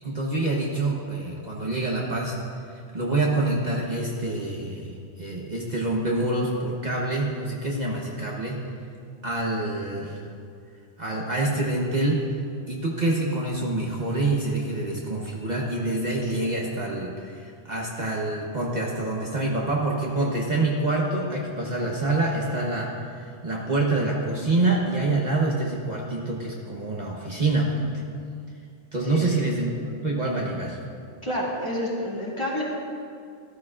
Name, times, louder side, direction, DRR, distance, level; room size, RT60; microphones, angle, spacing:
voice 1, 0.0-2.4 2.7-8.6 9.2-10.2 11.0-12.2 12.7-27.9 28.9-29.7 30.0-30.8, right 2 dB, 40° right, -3 dB, 1.1 m, -26 dB
voice 2, 31.2-32.6, equal, 25° left, -6 dB, 2.4 m, -29 dB
14.0 x 13.0 x 2.4 m, 2.3 s
omnidirectional pair, 1.2 m